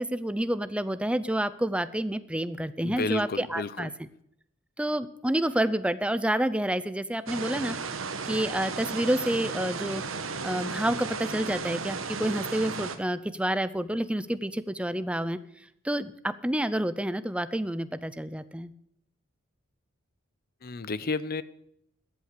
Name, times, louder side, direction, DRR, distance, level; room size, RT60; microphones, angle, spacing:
voice 1, 0.0-3.9 4.8-7.8 8.3-10.0 10.4-15.4 15.8-18.7, right 1 dB, 5° right, 14 dB, 0.6 m, -29 dB
voice 2, 2.8-3.9 20.6-21.4, left 3 dB, 45° left, 17 dB, 0.6 m, -31 dB
sound 1, 7.3-13.0, right 4 dB, 75° right, 1.3 m, -34 dB
14.0 x 8.4 x 6.7 m, 0.75 s
head